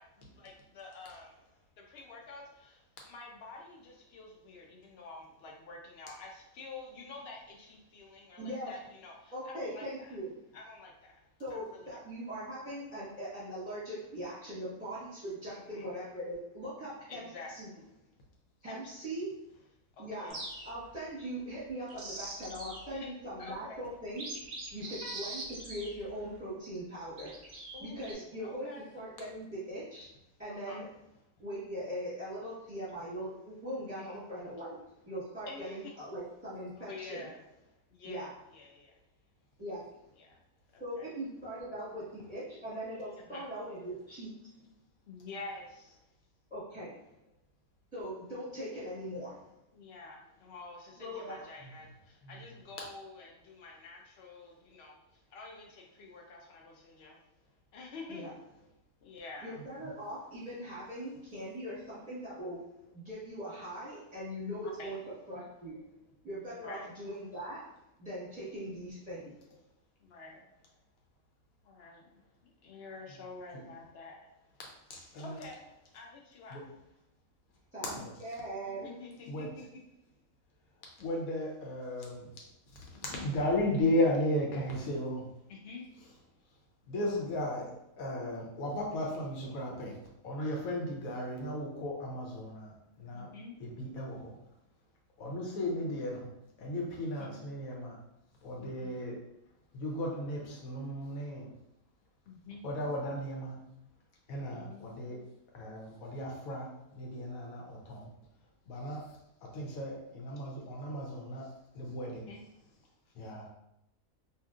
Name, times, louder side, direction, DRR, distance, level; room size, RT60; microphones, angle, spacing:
voice 1, 0.0-1.5 1.8-10.2 10.5-11.1 11.5-12.0 15.5-15.9 17.1-17.8 18.7-19.2 20.0-20.4 22.9-23.1 23.4-23.9 24.8-25.3 27.7-28.9 30.5-30.8 34.0-34.2 35.5-35.9 36.8-37.4 37.9-39.0 40.2-40.4 40.7-41.1 42.7-42.8 43.2-43.4 44.6-44.7 45.1-46.0 49.7-57.2 57.7-58.3 58.6-58.7 59.0-59.7 62.8-63.0 64.4-65.0 65.7-66.2 66.5-66.9 69.2-69.6 70.0-70.5 71.6-72.1 72.4-74.2 75.2-76.6 78.6-79.3 79.7-79.8 82.0-82.4 82.9-83.3 85.3-85.8 88.4-88.5 93.1-93.6 94.2-94.5 95.9-96.4 97.0-97.6 98.1-98.2 98.6-99.4 100.5-101.2 102.3-102.6 103.0-103.9 104.5-105.2 106.5-107.0 112.3-112.4, left 3 dB, 65° left, 0 dB, 0.6 m, -49 dB
voice 2, 8.4-8.7 9.3-10.3 11.4-17.3 17.5-17.7 18.6-19.3 20.0-20.4 20.6-24.2 24.7-27.3 27.8-28.7 28.9-30.0 30.4-30.9 31.4-34.8 35.1-37.2 38.0-38.3 39.6-39.8 40.8-44.3 46.5-46.9 47.9-49.3 51.0-51.4 58.1-58.3 59.4-62.6 62.9-65.0 65.3-65.8 66.2-67.6 68.0-69.3 77.7-79.0, equal, 5° right, -10 dB, 0.9 m, -40 dB
sound 1, 20.3-21.0 21.7-22.9 23.5-23.6 24.1-26.4 27.2-28.1, right 2 dB, 55° right, 0.7 m, -43 dB
voice 3, 74.9-75.4 76.5-76.6 77.9-78.1 79.3-79.5 81.0-82.3 83.0-85.2 86.9-87.7 88.0-90.0 90.2-92.7 93.0-93.3 93.6-94.3 95.2-96.3 96.6-98.0 98.4-99.2 99.7-101.5 102.6-103.5 104.3-105.2 105.5-106.7 106.9-108.1 108.7-109.0 109.5-111.5 111.7-112.3 113.2-113.5, left 1 dB, 80° left, -1 dB, 1.1 m, -35 dB
2.8 x 2.5 x 2.3 m, 0.82 s
omnidirectional pair, 1.5 m